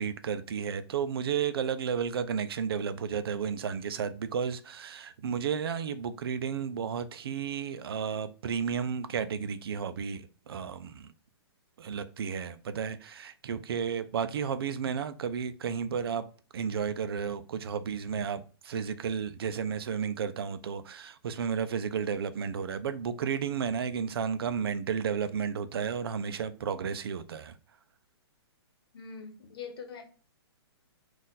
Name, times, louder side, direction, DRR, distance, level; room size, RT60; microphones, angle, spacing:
voice 1, 0.0-11.1 11.8-16.3 16.5-27.5, right 7 dB, 60° right, 0.5 m, -32 dB
voice 2, 28.9-30.0, left 6 dB, 60° left, 1.1 m, -43 dB
4.1 x 2.5 x 3.9 m
hypercardioid pair, 160°, 14 cm